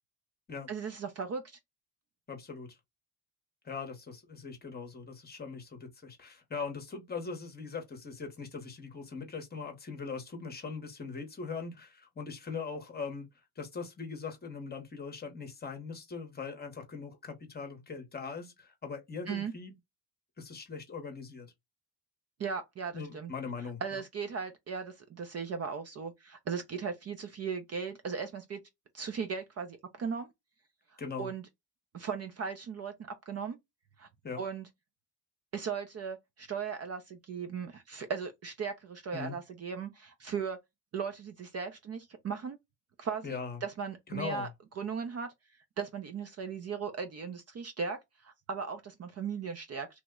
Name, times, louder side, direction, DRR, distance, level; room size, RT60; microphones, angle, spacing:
voice 1, 0.7-1.4 19.3-19.5 22.4-23.3 23.8-28.6 28.9-30.3 31.2-31.4 31.9-32.9 33.3-33.6 34.0-34.1 34.4-34.7 35.5-40.6 40.9-42.6 43.0-44.5 44.8-45.3 45.8-48.0 48.2-49.9, right 6 dB, 35° right, 0.5 m, -37 dB
voice 2, 2.3-2.8 3.6-13.3 13.6-19.7 20.4-21.5 22.9-24.0 31.0-31.3 34.2-34.4 39.1-39.4 43.2-43.6 44.1-44.5, left 5 dB, 20° left, 0.8 m, -41 dB
3.0 x 2.1 x 3.5 m
cardioid pair, 130°, 44 cm